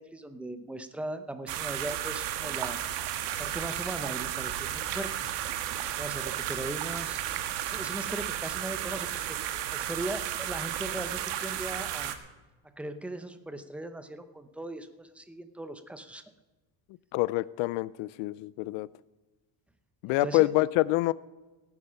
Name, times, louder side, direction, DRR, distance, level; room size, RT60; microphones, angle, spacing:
voice 1, 0.0-2.8 3.4-5.3 5.9-7.3 7.6-9.4 9.7-12.1 12.8-16.2 20.2-20.5, right 1 dB, 5° right, 9 dB, 0.7 m, -39 dB
sound 1, 1.5-12.1, right 11 dB, 70° right, 1.4 m, -33 dB
voice 2, 17.1-18.9 20.0-21.1, left 20 dB, 75° left, 19 dB, 0.5 m, -26 dB
16.5 x 9.9 x 5.7 m, 1.2 s
cardioid pair, 145°, 44 cm